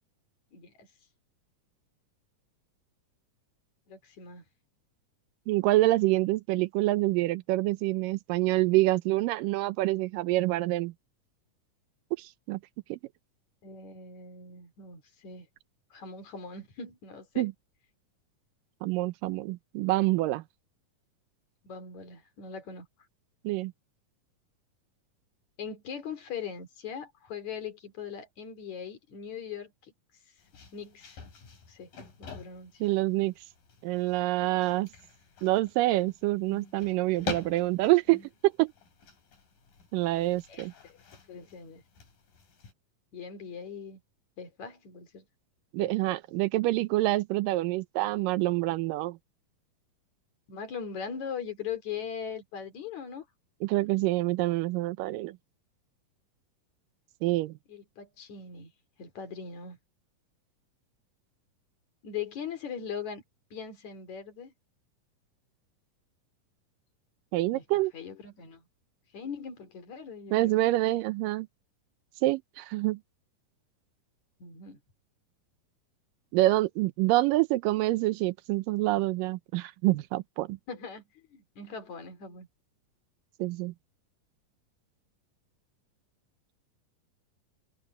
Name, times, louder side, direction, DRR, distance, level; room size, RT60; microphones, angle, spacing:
voice 1, 0.5-0.9 3.9-4.4 13.6-15.5 15.9-17.5 21.6-22.9 25.6-29.9 30.7-31.2 31.7-31.9 32.2-32.8 40.5-41.0 41.3-41.8 43.1-44.0 44.4-45.3 45.8-45.9 50.5-53.3 57.7-58.7 59.0-59.8 62.0-63.2 63.5-64.5 67.5-68.7 69.1-70.6 74.4-74.8 80.7-82.5, left 6 dB, 55° left, 4.2 m, -40 dB
voice 2, 5.5-10.9 12.2-12.6 12.9-13.0 17.4-17.5 18.8-20.4 23.4-23.7 32.8-33.3 33.8-34.9 35.4-38.7 39.9-40.7 45.7-49.2 53.6-55.4 57.2-57.6 67.3-67.9 70.3-71.5 72.2-73.0 76.3-80.6 83.4-83.7, right 18 dB, 85° right, 2.3 m, -26 dB
sound 1, 30.4-42.7, left 5 dB, 80° left, 6.6 m, -46 dB
omnidirectional pair, 3.9 m